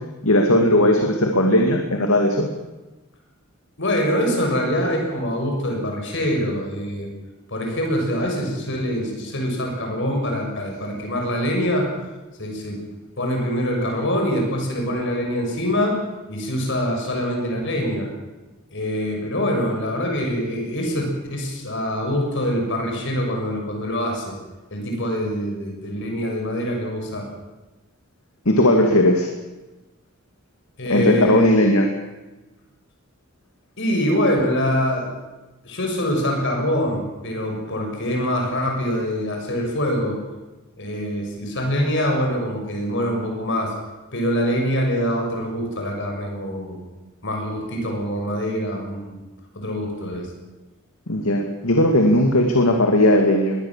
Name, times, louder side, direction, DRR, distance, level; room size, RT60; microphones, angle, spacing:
voice 1, 0.2-2.5 28.5-29.3 30.9-31.9 51.1-53.6, left 1 dB, 75° left, 3 dB, 2.5 m, -17 dB
voice 2, 3.8-7.1 7.5-12.0 12.4-12.8 13.2-16.0 16.3-18.1 18.7-24.4 24.7-27.3 30.8-31.6 33.8-35.2 35.6-40.2 40.8-43.7 44.1-46.8 47.2-49.2 49.5-50.3, equal, 55° left, 2 dB, 6.7 m, -24 dB
22.0 x 18.5 x 7.4 m, 1.1 s
head